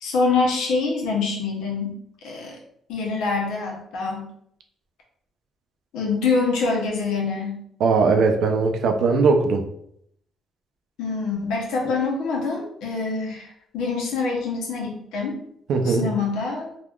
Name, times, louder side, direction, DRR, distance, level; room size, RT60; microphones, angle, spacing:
voice 1, 0.0-2.0 2.2-2.6 2.9-4.3 5.9-7.6 11.0-15.4 15.8-16.7, left 4 dB, 90° left, -1 dB, 0.8 m, -25 dB
voice 2, 7.8-9.6 15.7-16.1, right 4 dB, 75° right, 5 dB, 0.4 m, -19 dB
3.4 x 2.3 x 2.3 m, 0.71 s
cardioid pair, 95°, 0 cm